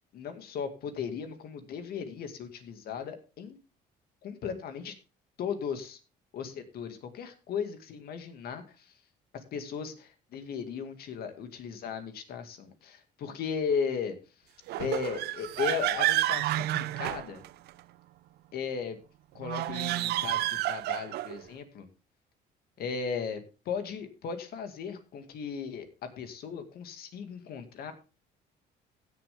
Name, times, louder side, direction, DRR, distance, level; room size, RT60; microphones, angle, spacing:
voice 1, 0.1-3.6 4.2-4.9 5.4-6.0 6.3-8.9 9.3-14.2 14.8-17.4 18.5-19.0 19.3-21.9 22.8-23.4 23.7-27.9, left 6 dB, 65° left, 7 dB, 2.2 m, -36 dB
sound 1, 14.7-17.8 19.4-21.4, right 15 dB, 75° right, 0.5 m, -30 dB
16.0 x 7.3 x 3.6 m, 0.32 s
cardioid pair, 110°, 17 cm